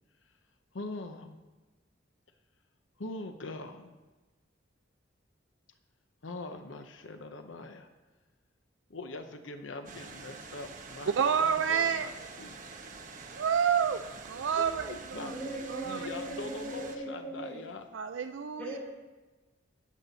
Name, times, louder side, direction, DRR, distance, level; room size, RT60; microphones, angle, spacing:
voice 1, 0.7-1.4 3.0-4.0 6.2-7.9 8.9-12.6 14.6-15.3 15.8-17.8, left 2 dB, 85° left, 7 dB, 0.8 m, -42 dB
sound 1, 9.8-17.0, right 4 dB, 45° right, 1.1 m, -46 dB
voice 2, 11.2-12.1 13.3-14.0 14.3-15.4 15.7-16.1 17.9-18.8, right 7 dB, 75° right, 9 dB, 0.4 m, -29 dB
voice 3, 15.1-17.6 18.3-18.8, right 1 dB, 10° left, -6 dB, 4.5 m, -39 dB
20.0 x 7.5 x 4.1 m, 1.2 s
head